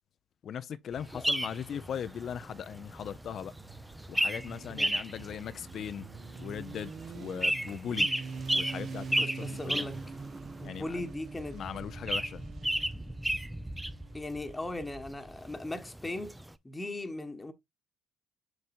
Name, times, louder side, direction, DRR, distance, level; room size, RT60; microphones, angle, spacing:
voice 1, 0.4-3.5 4.1-6.1 6.4-8.1 8.5-9.9 10.6-11.1 11.5-12.4, left 8 dB, 55° left, 0.5 m, -39 dB
sound 1, 1.0-16.5, right 1 dB, 5° right, 0.6 m, -35 dB
Motorcycle, 3.2-14.9, right 5 dB, 55° right, 1.0 m, -45 dB
voice 2, 9.2-10.0 10.6-11.6 14.1-16.4 16.6-17.5, left 2 dB, 15° left, 1.1 m, -38 dB
7.8 x 5.3 x 2.5 m
hypercardioid pair, 50°, 0 cm